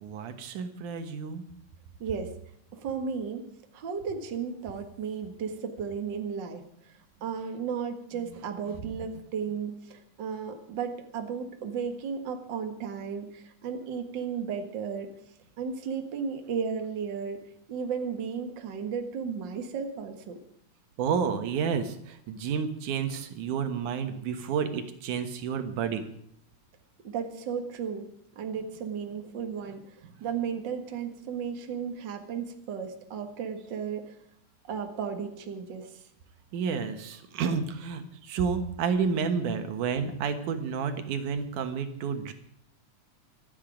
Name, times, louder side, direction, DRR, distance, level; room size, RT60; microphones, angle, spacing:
voice 1, 0.0-1.4 8.7-8.9 21.0-26.1 36.5-42.3, right 6 dB, 85° right, 7 dB, 2.8 m, -30 dB
voice 2, 2.0-2.4 2.7-3.4 3.7-6.9 7.2-15.1 15.6-17.4 17.7-20.4 27.0-28.1 28.4-29.8 30.2-34.1 34.6-36.0, right 6 dB, 45° right, 5 dB, 2.0 m, -34 dB
24.5 x 9.5 x 5.1 m, 0.72 s
omnidirectional pair, 3.5 m